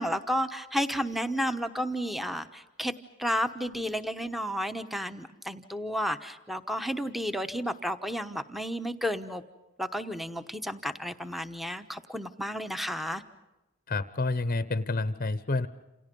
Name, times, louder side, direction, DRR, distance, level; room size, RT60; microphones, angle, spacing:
voice 1, 0.0-2.9 3.2-9.4 9.8-13.2, equal, ahead, 9 dB, 1.0 m, -32 dB
voice 2, 13.9-15.7, left 2 dB, 40° left, 14 dB, 0.9 m, -29 dB
28.5 x 28.5 x 5.4 m, 0.99 s
head